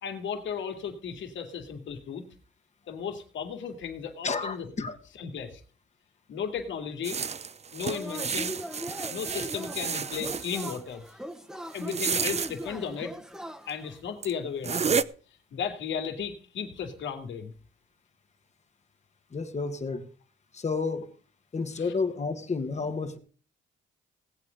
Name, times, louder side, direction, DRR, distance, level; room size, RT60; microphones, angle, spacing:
voice 1, 0.0-2.2 2.9-4.7 5.2-5.6 6.3-7.2 7.7-8.6 9.1-11.0 11.7-13.1 13.7-15.0 15.5-17.5 21.8-21.9, left 7 dB, 70° left, 6 dB, 2.7 m, -35 dB
voice 2, 4.2-5.0 19.3-20.1 20.5-21.1 21.5-23.2, left 4 dB, 35° left, 7 dB, 2.1 m, -31 dB
sound 1, 7.0-10.8 11.8-12.5 13.7-13.8 14.2-14.3 14.6-15.0, right 6 dB, 35° right, 0.7 m, -31 dB
Yell / Cheering, 7.8-14.0, equal, ahead, 1.6 m, -40 dB
18.0 x 8.4 x 5.3 m, 0.41 s
cardioid pair, 90°, 20 cm